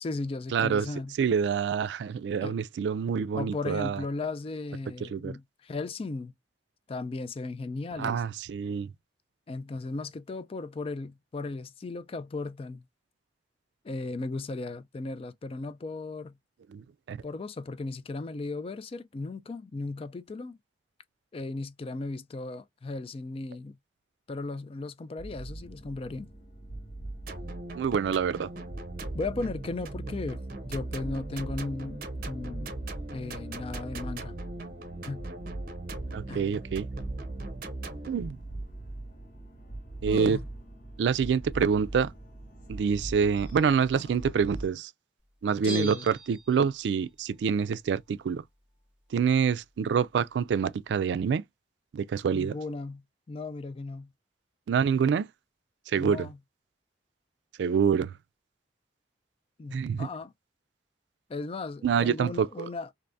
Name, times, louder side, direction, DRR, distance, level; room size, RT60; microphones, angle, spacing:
voice 1, 0.0-1.1 2.4-2.6 3.3-6.3 6.9-8.2 9.5-12.8 13.8-16.4 17.2-20.6 21.3-23.8 24.3-26.3 29.1-30.4 30.7-32.8 33.1-34.4 35.0-35.3 36.3-36.4 40.1-40.4 45.6-46.0 52.3-53.0 53.3-54.1 56.0-56.4 59.6-60.3 61.3-62.9, left 3 dB, 35° left, 0.3 m, -36 dB
voice 2, 0.5-0.9 1.2-4.0 5.0-5.4 7.9-8.9 16.7-17.2 27.8-28.5 36.1-36.9 38.1-38.4 40.0-40.4 41.0-42.1 42.7-44.9 45.4-48.4 49.1-51.4 51.9-52.6 54.7-55.3 55.9-56.3 57.6-58.1 59.7-60.1 61.8-62.7, right 6 dB, 80° right, 0.3 m, -26 dB
sound 1, 25.2-44.7, right 2 dB, 50° left, 1.2 m, -42 dB
sound 2, 27.3-38.1, right 2 dB, 55° right, 0.7 m, -40 dB
Bell, 45.7-47.1 47.3-47.4, right 3 dB, 5° right, 1.2 m, -42 dB
3.3 x 2.6 x 2.6 m
head